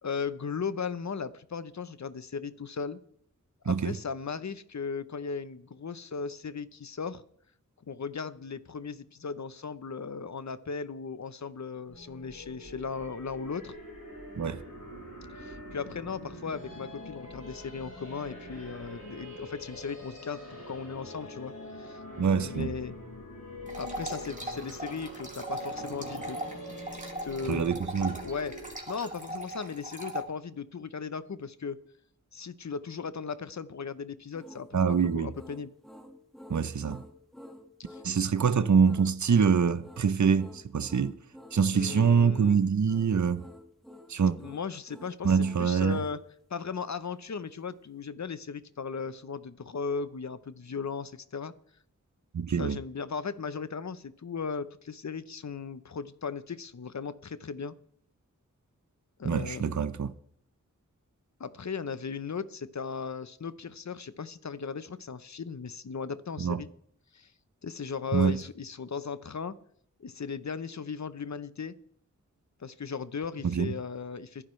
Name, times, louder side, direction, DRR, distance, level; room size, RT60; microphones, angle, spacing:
voice 1, 0.0-3.0 3.6-7.2 7.9-13.7 15.4-21.5 21.8-22.0 22.4-23.0 23.7-26.4 27.0-27.8 28.2-28.6 28.9-31.8 32.3-35.7 37.9-38.0 41.7-42.6 44.4-46.2 46.5-51.5 52.6-57.8 59.2-59.8 61.4-66.7 67.1-67.3 67.6-69.6 70.0-71.8 72.6-74.4, left 5 dB, 60° left, 0.8 m, -37 dB
sound 1, 11.9-28.7, equal, 85° left, 6.9 m, -44 dB
voice 2, 22.2-22.7 27.5-28.2 34.7-35.3 36.5-37.0 38.0-41.2 41.5-43.4 44.1-44.4 45.2-46.0 52.3-52.8 59.2-60.1 66.4-66.6 68.1-68.4 73.4-73.7, right 6 dB, 65° right, 0.7 m, -25 dB
sound 2, 23.7-30.2, right 1 dB, 25° right, 2.6 m, -39 dB
sound 3, 34.3-46.2, left 1 dB, ahead, 1.8 m, -50 dB
22.5 x 11.0 x 3.2 m
wide cardioid pair, 60°, 31 cm